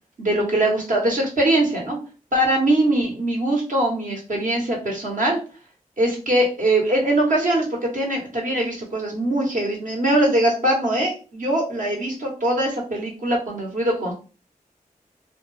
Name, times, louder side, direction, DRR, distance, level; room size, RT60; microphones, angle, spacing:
voice 1, 0.2-2.0 2.3-5.4 6.0-14.1, right 1 dB, 65° right, -1 dB, 1.1 m, -22 dB
2.3 x 2.2 x 3.1 m, 0.35 s
cardioid pair, 45°, 14 cm